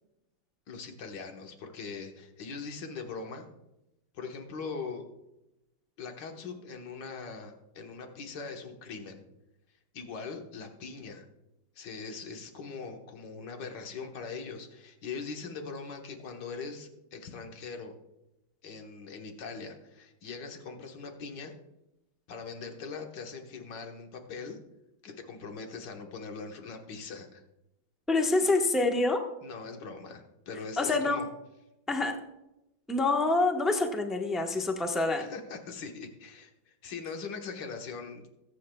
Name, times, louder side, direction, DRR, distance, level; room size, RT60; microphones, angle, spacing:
voice 1, 0.7-3.5 4.1-5.1 6.0-9.2 9.9-11.3 11.8-18.0 18.6-21.5 22.3-24.6 25.0-27.4 29.4-31.3 35.1-38.3, left 4 dB, 65° left, 4 dB, 2.0 m, -41 dB
voice 2, 28.1-29.2 30.8-31.2 31.9-32.2 32.9-35.3, left 3 dB, ahead, 3 dB, 0.7 m, -26 dB
22.0 x 8.5 x 2.3 m, 0.90 s
omnidirectional pair, 2.1 m